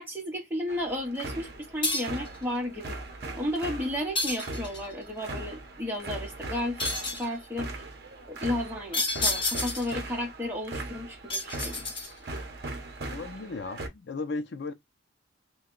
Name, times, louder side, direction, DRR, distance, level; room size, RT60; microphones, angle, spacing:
voice 1, 0.0-2.9 3.4-6.8 7.2-7.7 8.3-11.8, left 1 dB, 10° right, 0.9 m, -33 dB
sound 1, 0.7-13.9, right 2 dB, 55° right, 0.8 m, -40 dB
sound 2, 1.8-2.3 4.1-4.9 6.8-7.3 8.9-10.0 11.3-12.3, left 2 dB, 25° left, 1.0 m, -30 dB
voice 2, 13.1-14.7, left 3 dB, 60° left, 0.4 m, -35 dB
2.7 x 2.2 x 3.7 m
head